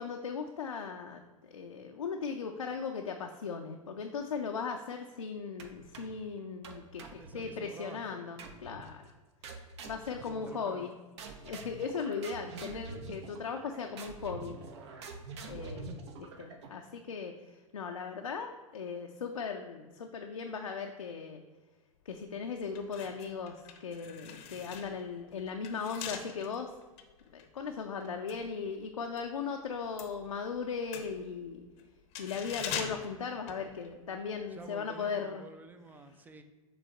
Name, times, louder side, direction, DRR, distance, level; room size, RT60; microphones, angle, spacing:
voice 1, 0.0-9.1 9.9-10.9 11.4-14.5 15.4-21.4 22.1-26.7 27.3-31.6 32.2-35.4, left 5 dB, 75° left, 3 dB, 0.5 m, -38 dB
sound 1, 5.6-6.2 6.6-7.8 8.4-8.9 9.4-10.9 11.2-16.9, right 4 dB, 50° right, 0.8 m, -46 dB
voice 2, 7.1-8.2 10.2-10.9 34.5-36.4, right 3 dB, 10° right, 8 dB, 0.4 m, -50 dB
sound 2, 22.1-22.2 22.7-29.3 29.6-34.2 34.5-34.7, left 7 dB, 35° left, 0.7 m, -44 dB
7.1 x 3.4 x 4.4 m, 1.3 s
figure-of-eight pair, 95°, 18 cm